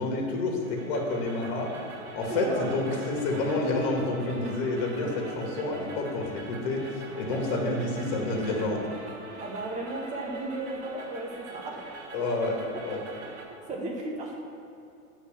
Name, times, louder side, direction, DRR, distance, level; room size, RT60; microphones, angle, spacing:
voice 1, 0.0-1.8 2.1-8.9 12.1-13.0, left 2 dB, 45° left, 0 dB, 1.8 m, -29 dB
sound 1, 0.6-13.5, right 3 dB, 35° right, 2.2 m, -43 dB
voice 2, 2.3-3.0 9.4-11.9 13.7-14.3, right 2 dB, 20° right, -1 dB, 1.0 m, -34 dB
9.5 x 4.4 x 7.2 m, 2.7 s
supercardioid pair, 160°, 39 cm